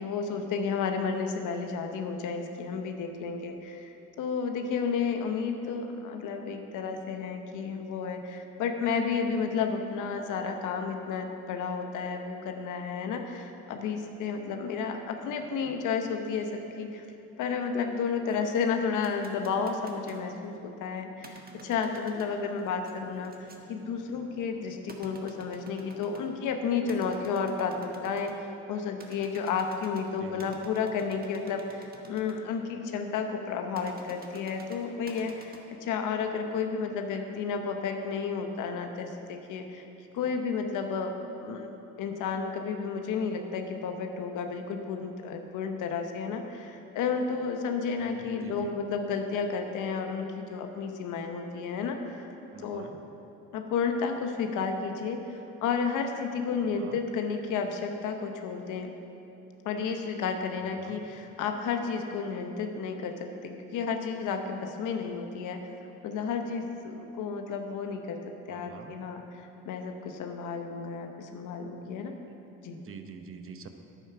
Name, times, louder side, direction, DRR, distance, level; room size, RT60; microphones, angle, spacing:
voice 1, 0.0-17.0 17.4-21.3 21.6-39.8 40.1-41.1 41.4-41.7 42.0-52.3 52.6-52.9 53.5-58.9 59.6-65.6 66.0-72.1 72.6-72.8, left 5 dB, 90° left, 5 dB, 1.0 m, -32 dB
sound 1, 18.3-20.3 21.2-26.4 26.9-28.4 28.9-32.4 33.8-35.6, right 2 dB, 30° right, 1.4 m, -51 dB
voice 2, 30.2-30.6 48.0-48.8 52.5-53.0 56.6-57.0 60.6-61.0 68.5-68.9 72.8-73.7, right 5 dB, 45° right, 7 dB, 0.9 m, -46 dB
9.2 x 9.1 x 5.9 m, 2.9 s
cardioid pair, 90°, 30 cm